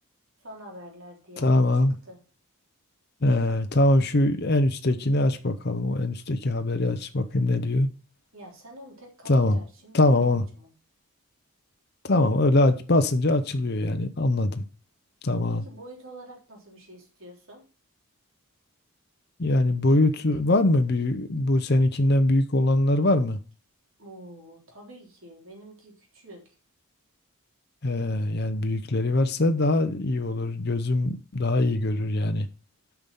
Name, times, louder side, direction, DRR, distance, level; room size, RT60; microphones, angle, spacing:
voice 1, 0.4-1.5 1.7-2.2 8.3-10.7 15.5-17.7 19.9-20.2 24.0-26.6, right 1 dB, 60° right, 3.7 m, -46 dB
voice 2, 1.4-1.9 3.2-7.9 9.3-9.6 9.9-10.4 12.0-14.6 15.2-15.6 19.4-23.4 27.8-32.5, left 2 dB, 45° left, 0.8 m, -22 dB
8.7 x 6.0 x 5.5 m
head